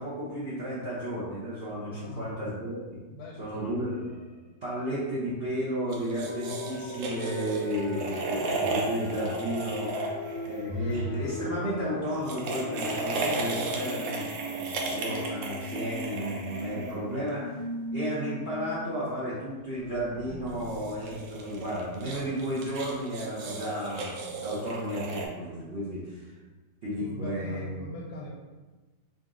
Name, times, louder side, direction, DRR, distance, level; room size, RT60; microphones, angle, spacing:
voice 1, 0.0-3.0 3.4-4.0 4.6-17.6 17.9-26.3 26.8-27.9, equal, 50° right, -8 dB, 0.7 m, -33 dB
voice 2, 1.9-2.4 3.1-3.8 7.6-7.9 13.1-13.7 27.0-28.3, left 1 dB, 65° left, -2 dB, 1.1 m, -42 dB
sound 1, 3.5-4.5 4.8-5.4 6.1-12.1, left 1 dB, 35° left, 0.4 m, -41 dB
sound 2, 5.9-11.0 12.1-17.3 20.5-25.3, right 3 dB, 85° right, 1.4 m, -35 dB
sound 3, 6.3-18.7 19.1-19.2 19.6-22.2, left 1 dB, 85° left, 1.4 m, -40 dB
3.9 x 2.6 x 3.6 m, 1.2 s
omnidirectional pair, 1.9 m